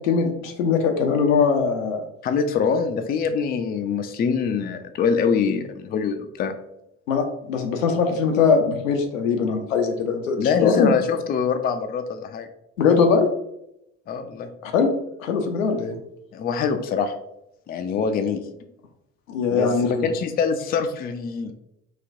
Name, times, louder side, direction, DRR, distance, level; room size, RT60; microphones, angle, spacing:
voice 1, 0.0-2.0 7.1-10.9 12.8-13.3 14.6-14.9 15.2-16.0 19.3-20.1, left 5 dB, 85° left, 4 dB, 0.5 m, -21 dB
voice 2, 2.2-6.5 10.4-12.5 14.1-14.5 16.3-17.1 17.7-18.4 19.5-21.5, left 6 dB, 25° left, 8 dB, 0.3 m, -24 dB
4.0 x 2.2 x 2.5 m, 0.81 s
hypercardioid pair, 50°, 39 cm